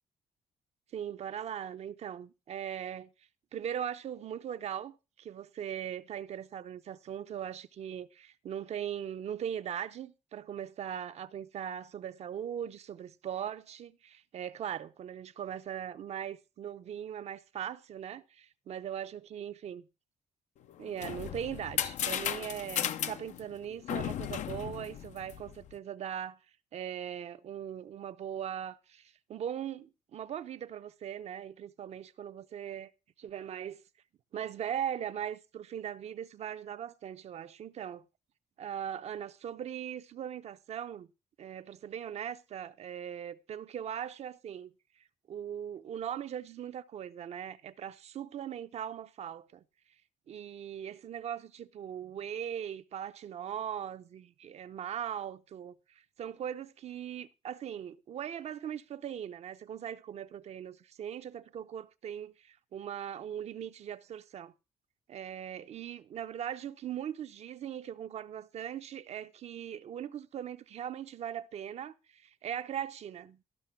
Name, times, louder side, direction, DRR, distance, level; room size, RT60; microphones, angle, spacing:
voice 1, 0.9-3.1 3.5-19.8 20.8-26.4 26.7-32.9 33.2-33.8 34.3-38.0 38.6-41.1 41.4-44.7 45.3-49.6 50.3-64.5 65.1-73.4, right 9 dB, 60° right, 0.7 m, -40 dB
sound 1, 20.7-25.7, left 10 dB, 70° left, 0.6 m, -35 dB
13.0 x 5.9 x 5.8 m
cardioid pair, 105°, 13 cm